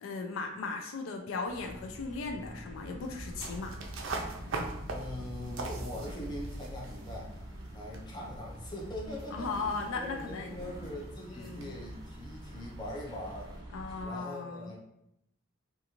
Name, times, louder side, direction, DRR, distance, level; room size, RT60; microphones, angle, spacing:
voice 1, 0.0-3.8 9.3-10.6 11.4-11.7 13.7-14.7, left 4 dB, 75° left, 3 dB, 0.4 m, -37 dB
sound 1, 1.4-14.0, equal, 20° right, 0.7 m, -44 dB
sound 2, 3.0-13.6, right 3 dB, 70° right, 0.4 m, -44 dB
voice 2, 4.9-7.3 7.7-13.5 14.0-14.8, left 1 dB, 20° left, -3 dB, 0.5 m, -42 dB
2.4 x 2.4 x 2.9 m, 0.81 s
head